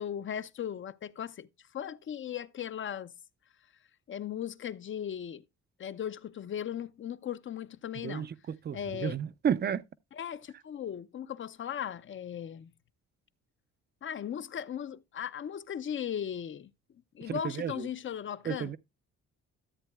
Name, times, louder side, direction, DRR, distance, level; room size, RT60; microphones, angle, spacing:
voice 1, 0.0-1.5 1.7-3.1 4.1-5.4 5.8-8.3 8.7-9.2 10.1-12.7 14.0-16.7 17.1-18.8, left 9 dB, 40° left, 0.6 m, -37 dB
voice 2, 8.0-9.8 17.3-17.9 18.4-18.8, right 8 dB, 35° right, 0.5 m, -32 dB
13.5 x 7.9 x 2.3 m
cardioid pair, 90°, 30 cm